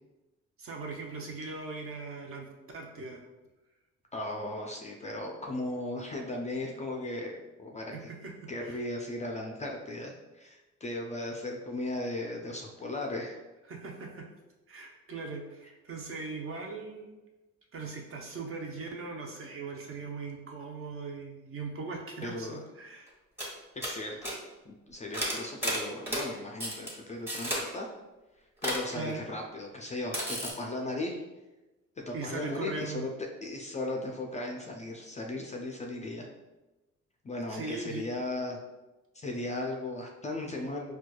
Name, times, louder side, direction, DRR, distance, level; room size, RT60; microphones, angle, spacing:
voice 1, 0.6-2.5 2.7-3.2 7.9-8.8 13.7-14.3 14.7-17.1 17.7-23.1 28.9-29.3 32.1-33.1 37.5-38.1, right 3 dB, 45° right, 0 dB, 0.7 m, -39 dB
voice 2, 4.1-8.1 8.5-13.4 22.2-22.6 23.8-24.4 24.7-27.9 28.6-31.2 32.1-33.1 33.4-36.3 37.2-38.6 39.1-41.0, left 2 dB, 25° left, 0 dB, 0.3 m, -37 dB
sound 1, 23.1-23.2 23.4-23.5 23.8-24.3 25.1-26.3 26.6-26.9 27.3-27.6 28.6-28.8 30.1-30.5, equal, 10° right, 1.1 m, -32 dB
4.4 x 2.3 x 2.2 m, 1.1 s
cardioid pair, 90°, 30 cm